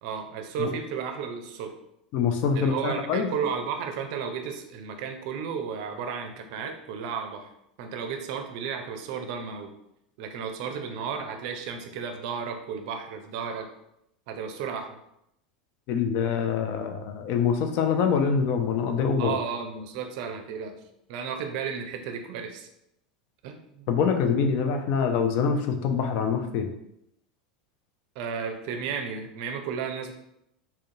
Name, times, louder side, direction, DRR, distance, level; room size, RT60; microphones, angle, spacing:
voice 1, 0.0-1.7 2.5-7.5 7.8-9.7 10.2-13.7 14.3-15.0 19.2-20.8 21.1-22.7 23.4-23.9 28.2-30.1, right 6 dB, 55° right, 6 dB, 0.5 m, -33 dB
voice 2, 2.1-3.3 15.9-19.4 23.9-26.7, left 6 dB, 50° left, 5 dB, 0.4 m, -25 dB
3.6 x 2.2 x 2.7 m, 0.78 s
figure-of-eight pair, 85°, 4 cm